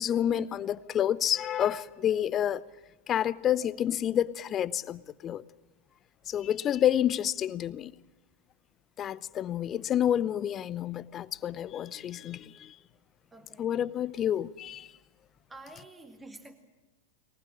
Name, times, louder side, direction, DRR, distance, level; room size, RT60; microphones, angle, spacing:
voice 1, 0.0-2.6 3.1-5.4 6.3-7.9 9.0-12.8 13.6-14.9, left 10 dB, 30° left, 0.7 m, -29 dB
voice 2, 13.3-13.8 15.5-16.5, right 2 dB, 10° right, 2.3 m, -49 dB
22.5 x 19.5 x 8.7 m
figure-of-eight pair, 90°, 0 cm